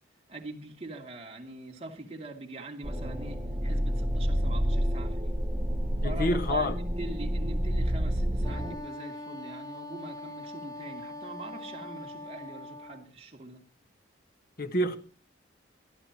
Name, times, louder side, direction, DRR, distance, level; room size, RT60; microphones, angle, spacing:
voice 1, 0.3-5.4 6.0-13.6, right 2 dB, 35° right, 2.7 m, -43 dB
sound 1, 2.8-8.8, equal, 15° right, 1.4 m, -29 dB
voice 2, 6.0-6.8 14.6-15.0, left 1 dB, 50° left, 1.6 m, -27 dB
Wind instrument woodwind instrument, 8.4-13.1, left 1 dB, 20° left, 0.7 m, -42 dB
24.0 x 12.5 x 3.0 m
head